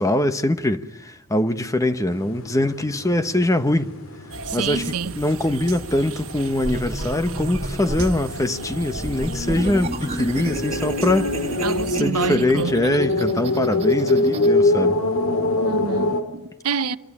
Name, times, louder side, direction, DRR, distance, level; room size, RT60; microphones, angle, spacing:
voice 1, 0.0-3.9 4.5-11.3 12.0-15.0, left 1 dB, 15° left, 1.0 m, -22 dB
sound 1, 2.1-16.2, left 2 dB, 65° left, 2.5 m, -26 dB
sound 2, 4.3-12.0, right 4 dB, 65° right, 1.4 m, -37 dB
voice 2, 4.5-5.2 11.6-12.7 15.6-17.0, right 5 dB, 90° right, 0.9 m, -27 dB
sound 3, 6.6-8.2 8.9-14.5, right 1 dB, 30° right, 2.4 m, -32 dB
26.5 x 21.5 x 9.8 m
head